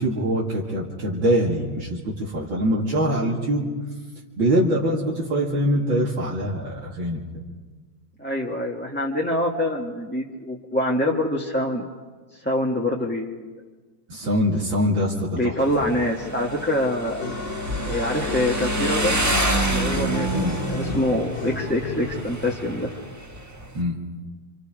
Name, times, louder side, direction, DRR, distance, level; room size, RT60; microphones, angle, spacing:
voice 1, 0.0-3.7 4.4-7.4 14.1-15.6 15.8-15.9 20.4-20.6 23.7-24.0, equal, 70° right, -4 dB, 3.1 m, -23 dB
voice 2, 8.2-11.9 12.4-13.6 15.3-17.2 17.9-19.2 19.7-22.9, left 1 dB, 5° left, -3 dB, 1.3 m, -25 dB
Motorcycle, 15.6-23.8, right 1 dB, 10° right, 1.1 m, -28 dB
sound 1, 17.2-22.6, left 4 dB, 70° left, 2.9 m, -33 dB
28.0 x 26.5 x 5.1 m, 1.4 s
omnidirectional pair, 2.3 m